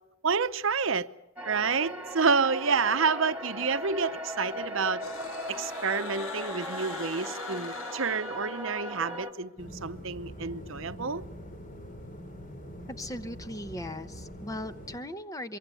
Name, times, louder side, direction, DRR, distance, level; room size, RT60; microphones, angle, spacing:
voice 1, 0.2-1.1 1.4-5.0 5.5-11.2, right 5 dB, 65° right, 0.8 m, -29 dB
sound 1, 1.4-9.3, equal, 5° right, 2.5 m, -38 dB
sound 2, 5.0-9.0, left 5 dB, 70° left, 1.5 m, -43 dB
sound 3, 9.6-15.0, equal, 40° left, 3.0 m, -44 dB
voice 2, 12.9-15.6, left 1 dB, 15° left, 0.9 m, -38 dB
23.5 x 23.5 x 7.0 m
head